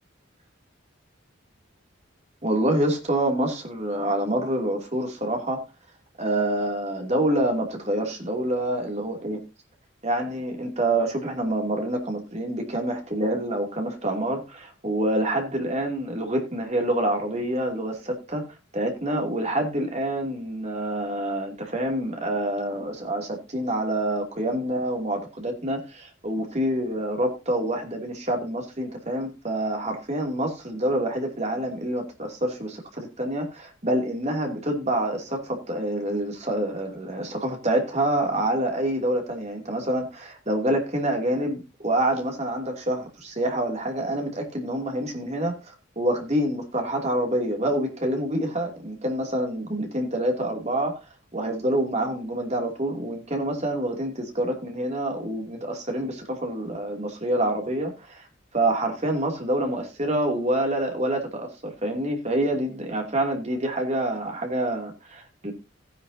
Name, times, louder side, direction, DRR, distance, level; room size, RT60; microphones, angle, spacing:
voice 1, 2.4-5.6 6.2-9.4 10.0-18.4 18.7-51.0 51.3-58.3 58.5-65.5, right 1 dB, 35° right, 2 dB, 2.8 m, -27 dB
16.0 x 10.0 x 2.8 m, 0.26 s
head